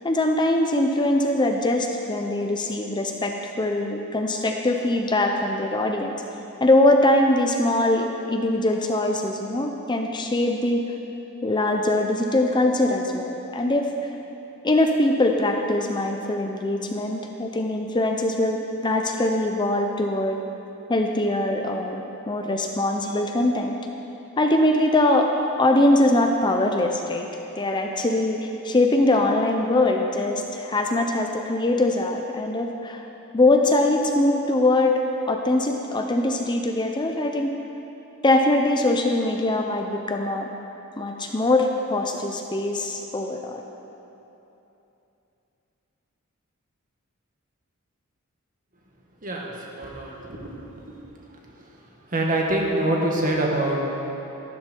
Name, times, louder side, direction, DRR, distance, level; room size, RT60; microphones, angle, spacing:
voice 1, 0.0-6.2 6.6-10.8 11.4-13.9 14.6-20.4 20.9-23.8 24.4-25.3 25.6-27.3 27.6-33.0 33.3-35.0 35.3-37.6 38.2-40.5 41.0-43.6, left 1 dB, 20° left, 3 dB, 0.6 m, -22 dB
voice 2, 49.2-51.0 51.6-51.7 52.1-53.9, right 1 dB, 40° right, -2 dB, 1.9 m, -25 dB
13.5 x 12.5 x 4.5 m, 3.0 s
head